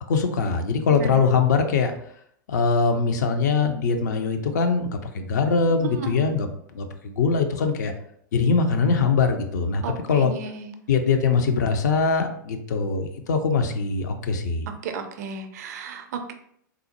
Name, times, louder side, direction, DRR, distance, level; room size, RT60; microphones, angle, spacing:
voice 1, 0.1-1.9 2.5-6.5 6.7-7.9 8.3-10.3 10.9-14.7, left 5 dB, 55° left, 6 dB, 0.5 m, -22 dB
voice 2, 9.8-10.8 14.8-16.3, right 5 dB, 55° right, 7 dB, 0.4 m, -33 dB
3.5 x 2.0 x 2.8 m, 0.68 s
figure-of-eight pair, 95°, 11 cm